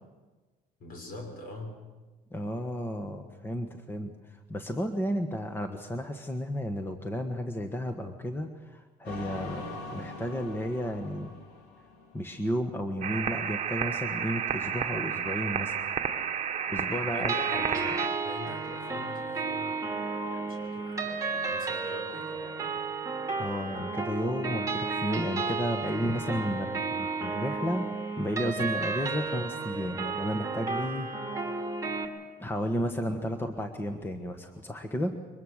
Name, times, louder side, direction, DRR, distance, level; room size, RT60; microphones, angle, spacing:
voice 1, 0.8-1.8 17.1-22.8, left 2 dB, 60° left, 3 dB, 5.8 m, -44 dB
voice 2, 2.3-9.6 9.9-11.3 12.1-15.8 16.7-17.6 17.9-18.0 23.4-27.8 28.2-31.1 31.3-31.7 32.4-35.1, equal, 15° left, 6 dB, 1.4 m, -33 dB
sound 1, 9.0-12.5, left 3 dB, 80° left, 3.6 m, -42 dB
sound 2, 13.0-18.1, right 8 dB, 40° right, 1.3 m, -31 dB
sound 3, 17.3-32.1, right 4 dB, 20° right, 2.7 m, -33 dB
23.0 x 20.0 x 6.5 m, 1.3 s
cardioid pair, 110°, 17 cm